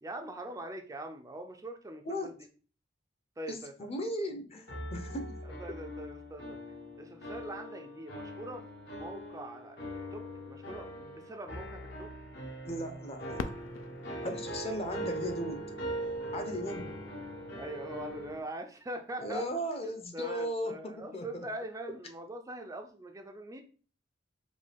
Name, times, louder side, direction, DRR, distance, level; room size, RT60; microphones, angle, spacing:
voice 1, 0.0-2.3 3.4-3.7 5.5-6.6 7.0-8.7 8.9-12.1 17.6-19.4 19.8-23.6, right 1 dB, 15° right, 4 dB, 0.4 m, -42 dB
voice 2, 3.5-5.4 12.6-13.5 14.2-15.6 16.3-16.9 19.2-21.5, equal, 30° left, 6 dB, 0.6 m, -37 dB
sound 1, 4.7-18.4, right 1 dB, 65° left, 1.0 m, -41 dB
Fireworks, 13.3-16.1 16.8-16.9 17.6-18.0 19.9-20.1, left 5 dB, 90° left, 0.4 m, -44 dB
5.2 x 2.3 x 3.3 m, 0.40 s
head